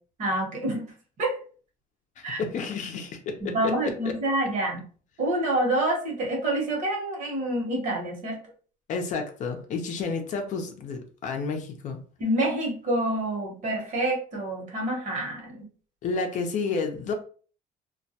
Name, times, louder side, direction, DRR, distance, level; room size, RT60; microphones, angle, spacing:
voice 1, 0.2-1.4 2.2-2.4 3.4-4.8 5.2-8.4 12.2-15.7, right 1 dB, 50° right, 1.0 m, -27 dB
voice 2, 2.2-3.9 8.9-12.0 16.0-17.1, left 4 dB, 50° left, 0.5 m, -30 dB
2.2 x 2.1 x 2.7 m
cardioid pair, 135°, 16 cm